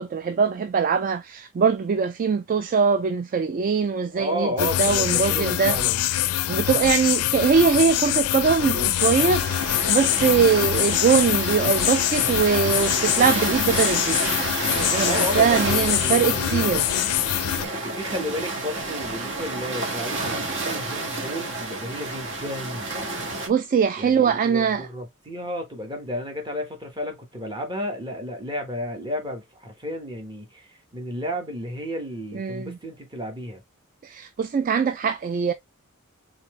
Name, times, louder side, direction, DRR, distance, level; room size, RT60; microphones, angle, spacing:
voice 1, 0.0-5.8 6.5-14.4 14.7-16.9 23.5-24.9 32.3-32.8 34.0-35.5, right 6 dB, 40° right, 0.3 m, -22 dB
voice 2, 4.1-6.0 15.0-16.8 17.8-22.9 24.0-33.6, left 1 dB, 20° right, 1.3 m, -32 dB
sound 1, 4.6-17.7, left 13 dB, 80° left, 0.4 m, -24 dB
sound 2, 9.0-23.5, right 2 dB, 60° right, 1.4 m, -30 dB
4.2 x 3.7 x 3.1 m
head